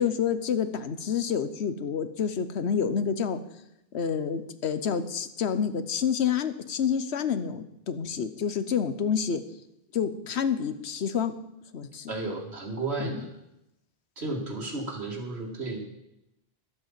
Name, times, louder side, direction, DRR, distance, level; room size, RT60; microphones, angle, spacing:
voice 1, 0.0-3.4 3.9-9.4 9.9-11.3 11.7-12.1 13.0-13.2, left 7 dB, 90° left, 12 dB, 1.2 m, -28 dB
voice 2, 12.1-13.3 14.2-15.8, right 3 dB, 85° right, 0 dB, 2.7 m, -33 dB
12.0 x 8.2 x 7.4 m, 0.84 s
omnidirectional pair, 1.1 m